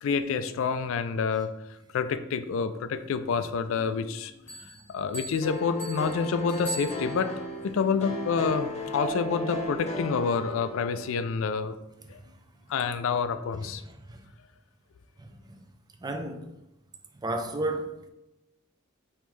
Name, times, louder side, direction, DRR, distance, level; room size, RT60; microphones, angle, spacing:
voice 1, 0.0-1.5 1.9-4.3 4.9-7.3 7.6-11.7 12.1-12.2 12.7-13.8, left 5 dB, 65° left, 0.3 m, -28 dB
sound 1, 4.5-7.5, right 2 dB, 10° left, 1.1 m, -41 dB
sound 2, 5.4-11.3, left 1 dB, 30° left, 0.7 m, -36 dB
voice 2, 16.0-16.5 17.2-18.1, right 2 dB, 20° right, 0.4 m, -31 dB
5.1 x 3.1 x 3.1 m
head